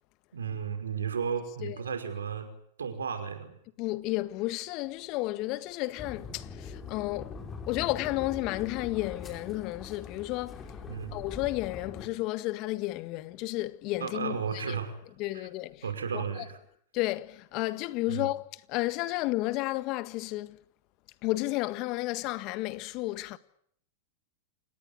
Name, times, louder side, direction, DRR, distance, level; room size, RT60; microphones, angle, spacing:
voice 1, 0.3-2.5 2.8-3.6 10.9-11.1 14.0-15.0 15.3-15.5 15.8-16.6 18.1-18.3, right 6 dB, 85° right, 5.5 m, -34 dB
voice 2, 3.8-7.3 7.7-10.7 11.1-14.8 15.2-15.8 16.1-16.2 16.9-20.6 21.2-23.4, left 19 dB, 45° left, 1.7 m, -32 dB
sound 1, 6.0-12.1, left 5 dB, 25° left, 4.8 m, -42 dB
29.0 x 19.0 x 9.9 m
hypercardioid pair, 105°, 0 cm